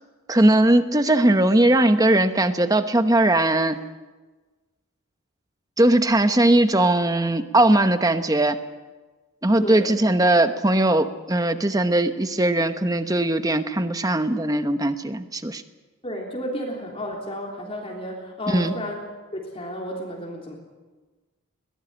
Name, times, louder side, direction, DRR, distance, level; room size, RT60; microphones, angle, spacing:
voice 1, 0.3-3.8 5.8-8.6 9.4-15.6 18.5-18.7, right 1 dB, 15° right, 9 dB, 1.0 m, -19 dB
voice 2, 9.6-10.0 16.0-19.0 19.3-20.6, equal, 25° left, -1 dB, 3.5 m, -32 dB
22.0 x 18.0 x 8.9 m, 1.3 s
head